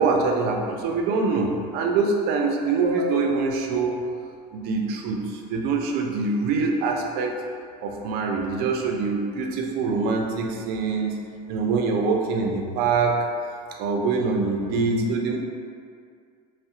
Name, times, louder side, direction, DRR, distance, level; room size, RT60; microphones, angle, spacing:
voice 1, 0.0-4.0 4.5-7.3 7.8-11.1 11.5-13.3 13.8-15.4, right 4 dB, 50° right, 2 dB, 0.4 m, -24 dB
2.6 x 2.0 x 2.4 m, 2.2 s
supercardioid pair, 105°, 21 cm